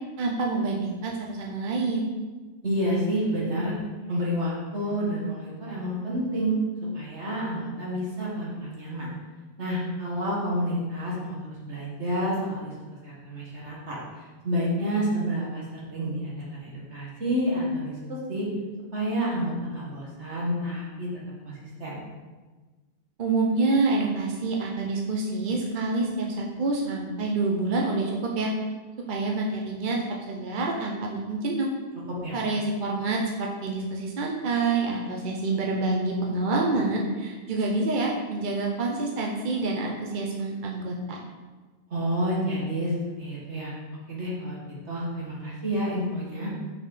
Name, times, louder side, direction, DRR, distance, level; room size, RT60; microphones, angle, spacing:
voice 1, 0.2-2.1 23.2-28.5 29.1-31.7 32.3-41.2, right 3 dB, 50° right, -1 dB, 0.9 m, -27 dB
voice 2, 2.6-3.7 4.1-6.6 6.9-9.1 9.6-11.4 11.7-12.7 13.0-18.5 18.9-21.1 21.4-21.5 21.8-22.0 32.2-32.4 41.9-42.9 43.2-43.8 44.1-44.6 44.9-46.5, equal, 70° right, -5 dB, 2.2 m, -29 dB
5.9 x 4.5 x 5.5 m, 1.3 s
omnidirectional pair, 1.2 m